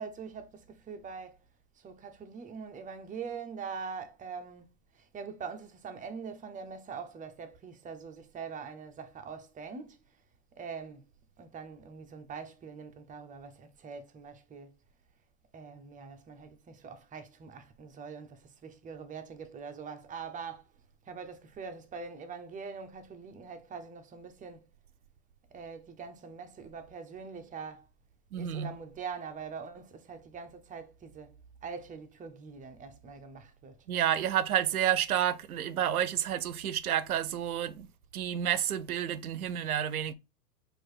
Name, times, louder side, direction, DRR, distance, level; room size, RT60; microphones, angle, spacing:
voice 1, 0.0-1.4 1.8-10.0 10.5-11.0 11.4-14.7 15.5-20.7 21.1-24.6 25.5-27.9 28.4-31.3 31.6-33.8, right 5 dB, 20° right, 0.7 m, -43 dB
voice 2, 28.3-28.7 33.9-37.9 38.1-40.1, right 10 dB, 75° right, 0.6 m, -30 dB
4.6 x 2.6 x 4.4 m
figure-of-eight pair, 90°, 44 cm